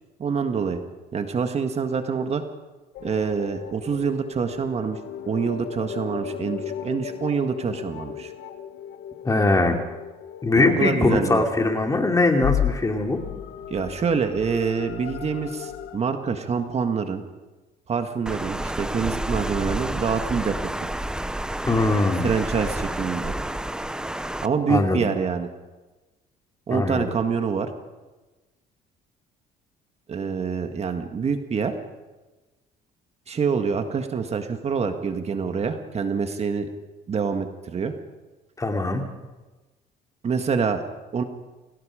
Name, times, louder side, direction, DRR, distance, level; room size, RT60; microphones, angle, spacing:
voice 1, 0.2-0.8 1.1-2.4 3.0-5.0 5.2-8.3 10.5-11.4 13.7-17.2 17.9-20.5 22.2-23.4 24.4-25.5 26.7-27.7 30.1-31.7 33.3-36.7 37.1-37.9 40.2-40.8 41.1-41.2, right 5 dB, 40° right, 6 dB, 1.8 m, -26 dB
sound 1, 2.9-16.0, left 9 dB, 75° left, 1.4 m, -35 dB
voice 2, 9.2-9.8 10.4-13.2 21.7-22.3 24.7-25.0 26.7-27.1 38.6-39.0, left 2 dB, 20° left, 3 dB, 2.8 m, -21 dB
Water, 18.3-24.5, right 1 dB, 5° right, 0.7 m, -30 dB
28.0 x 18.0 x 5.1 m, 1.2 s
cardioid pair, 110°, 17 cm